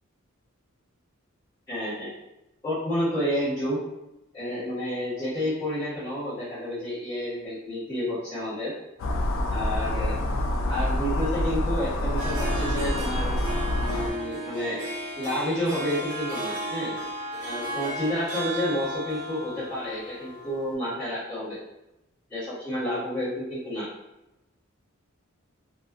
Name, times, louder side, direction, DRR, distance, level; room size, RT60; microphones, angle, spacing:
voice 1, 1.7-2.1 2.6-3.8 4.3-8.7 9.5-10.2 10.7-13.3 13.8-14.9 15.1-16.9 17.4-21.6 22.3-23.9, equal, 20° left, -17 dB, 1.2 m, -30 dB
sound 1, 9.0-14.1, left 1 dB, 65° left, 0.3 m, -27 dB
Harp, 12.0-20.7, right 1 dB, 55° right, 0.7 m, -34 dB
2.6 x 2.3 x 2.3 m, 0.94 s
head